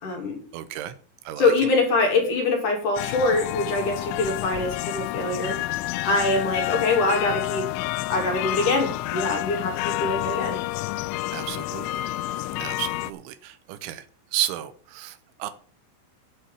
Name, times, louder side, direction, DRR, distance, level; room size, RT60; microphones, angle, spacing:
voice 1, 0.0-0.4 1.4-5.6 6.0-7.7 8.1-10.6, left 3 dB, 45° left, 1 dB, 3.7 m, -24 dB
voice 2, 0.5-1.0 1.3-1.5 11.3-11.9 12.6-14.1 14.3-15.5, right 12 dB, 80° right, 12 dB, 3.1 m, -32 dB
sound 1, 3.0-13.1, left 17 dB, 85° left, 3.2 m, -29 dB
8.5 x 8.1 x 7.3 m, 0.42 s
omnidirectional pair, 5.6 m